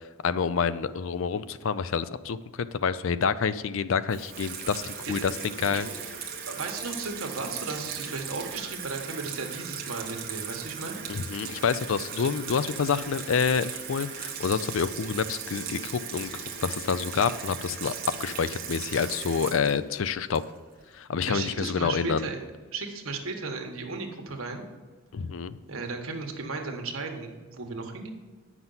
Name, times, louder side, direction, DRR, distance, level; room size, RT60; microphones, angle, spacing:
voice 1, 0.2-5.9 11.1-17.9 18.2-20.4 21.0-22.3 25.1-25.6, left 6 dB, 70° left, 14 dB, 0.4 m, -28 dB
Water tap faucet / Sink (filling or washing), 4.1-20.8, right 7 dB, 45° right, 1.1 m, -38 dB
voice 2, 6.4-11.0 21.3-22.4 22.7-24.6 25.7-28.1, right 3 dB, 80° right, 2 dB, 1.4 m, -35 dB
9.1 x 6.1 x 5.6 m, 1.3 s
head